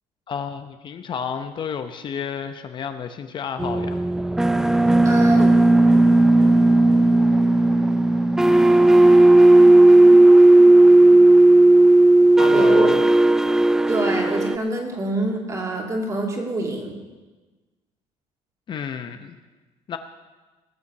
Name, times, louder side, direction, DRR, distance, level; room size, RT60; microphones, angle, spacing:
voice 1, 0.3-4.0 12.3-13.0 18.7-19.4 19.9-20.0, left 7 dB, 40° left, 8 dB, 0.8 m, -31 dB
sound 1, 3.6-14.6, right 2 dB, 5° right, 0.3 m, -14 dB
voice 2, 5.0-5.5 12.5-12.9 13.9-17.0, right 2 dB, 25° right, 1 dB, 2.6 m, -26 dB
19.0 x 7.0 x 7.3 m, 1.2 s
cardioid pair, 140°, 13 cm